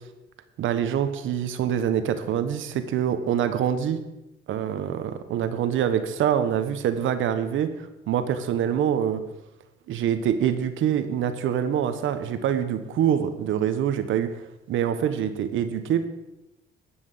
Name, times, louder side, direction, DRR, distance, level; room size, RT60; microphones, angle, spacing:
voice 1, 0.6-4.0 4.5-7.7 8.1-9.2 9.9-14.3 14.7-16.0, right 9 dB, 80° right, 10 dB, 1.2 m, -25 dB
11.5 x 6.3 x 7.6 m, 0.96 s
cardioid pair, 90°, 20 cm